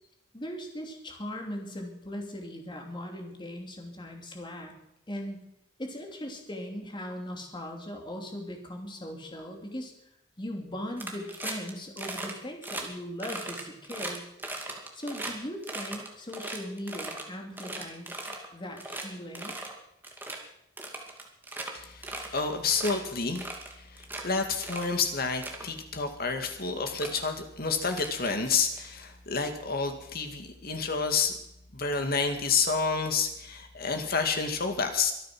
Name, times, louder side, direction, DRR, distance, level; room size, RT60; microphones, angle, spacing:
voice 1, 0.3-4.7 5.1-5.4 5.8-9.9 10.4-14.2 14.9-18.2 18.5-19.6, left 1 dB, 25° left, 2 dB, 2.9 m, -39 dB
sound 1, 11.0-11.7 12.0-12.3 12.6-12.8 13.2-15.3 15.6-17.2 17.6-18.5 18.8-19.0 19.3-19.7 20.0-20.4 20.8-21.7 22.0-22.4 22.7-22.9 23.4-24.2 24.6-24.9 25.3-25.6 26.4-26.5 26.9-27.1 27.9-28.8, right 2 dB, 10° right, 2.4 m, -38 dB
voice 2, 21.7-23.5 23.7-31.4 31.7-35.1, left 5 dB, 50° left, 6 dB, 2.2 m, -29 dB
24.0 x 9.4 x 6.2 m, 0.80 s
head